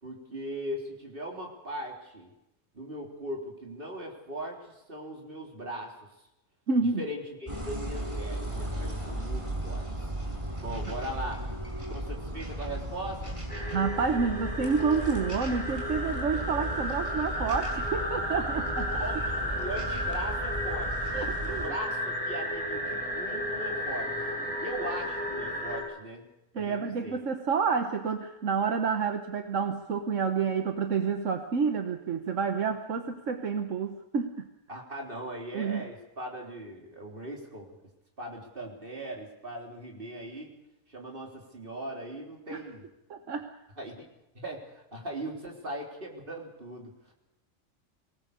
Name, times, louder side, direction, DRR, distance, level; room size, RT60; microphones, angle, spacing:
voice 1, 0.0-2.3 2.7-5.9 7.0-10.1 10.6-11.4 11.8-13.4 19.0-21.1 21.4-24.3 24.6-26.3 26.5-27.2 34.7-37.7 38.2-40.6 40.9-42.8 43.8-44.1 44.3-47.1, right 1 dB, 45° right, 0 dB, 4.0 m, -39 dB
voice 2, 6.7-7.0 13.7-19.2 21.1-21.6 26.5-34.5 35.5-35.9 42.5-42.6 43.1-43.5, right 5 dB, 75° right, 6 dB, 1.5 m, -29 dB
sound 1, 7.5-21.7, right 1 dB, 25° right, 5.3 m, -36 dB
sound 2, 13.5-25.8, equal, 5° left, 6.0 m, -33 dB
23.5 x 19.0 x 6.8 m, 0.89 s
omnidirectional pair, 1.3 m